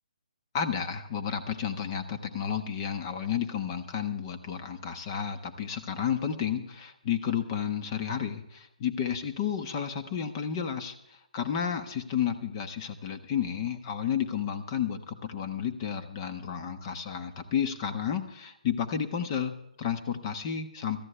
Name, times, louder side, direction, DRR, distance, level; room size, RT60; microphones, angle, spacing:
voice 1, 0.5-10.9 11.3-21.0, left 8 dB, 30° left, 8 dB, 1.3 m, -31 dB
19.0 x 13.5 x 3.4 m, 0.81 s
hypercardioid pair, 150°, 4 cm